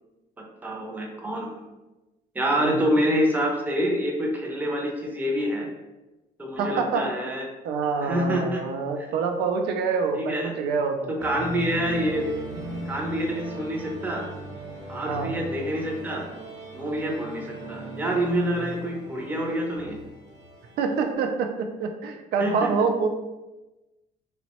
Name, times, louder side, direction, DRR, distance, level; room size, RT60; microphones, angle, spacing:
voice 1, 0.6-1.6 2.3-5.7 6.4-7.4 8.0-8.6 9.0-9.1 10.1-10.5 11.2-12.3 12.9-14.2 14.9-16.3 16.7-20.0 22.4-22.7, equal, 10° right, 0 dB, 0.5 m, -27 dB
voice 2, 6.6-7.1 7.6-11.2 15.0-15.3 20.8-23.1, right 5 dB, 75° right, 5 dB, 0.4 m, -26 dB
sound 1, 11.2-21.1, right 1 dB, 45° right, 0.8 m, -38 dB
2.9 x 2.1 x 2.8 m, 1.1 s
cardioid pair, 110°, 17 cm